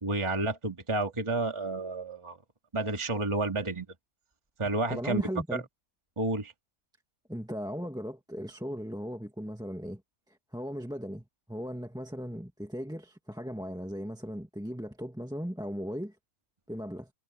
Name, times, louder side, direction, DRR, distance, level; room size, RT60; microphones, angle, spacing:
voice 1, 0.0-2.4 2.7-3.9 4.6-5.2 5.5-5.6 6.2-6.5, right 2 dB, 20° right, 1.9 m, -30 dB
voice 2, 4.9-5.7 7.3-10.0 10.3-16.1 16.7-17.1, equal, 5° right, 1.7 m, -37 dB
omnidirectional pair, 1.5 m